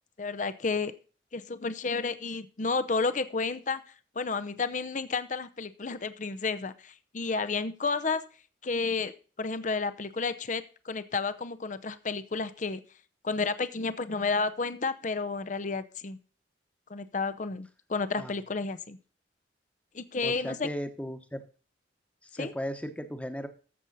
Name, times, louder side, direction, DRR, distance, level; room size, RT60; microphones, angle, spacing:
voice 1, 0.2-0.9 1.3-3.8 4.2-8.2 8.6-9.1 9.4-12.8 13.2-16.2 16.9-19.0 19.9-20.7 22.4-22.5, left 4 dB, 40° left, 13 dB, 0.7 m, -31 dB
voice 2, 20.2-21.4 22.2-23.5, equal, 5° left, 8 dB, 1.1 m, -36 dB
14.0 x 7.1 x 4.0 m, 0.38 s
head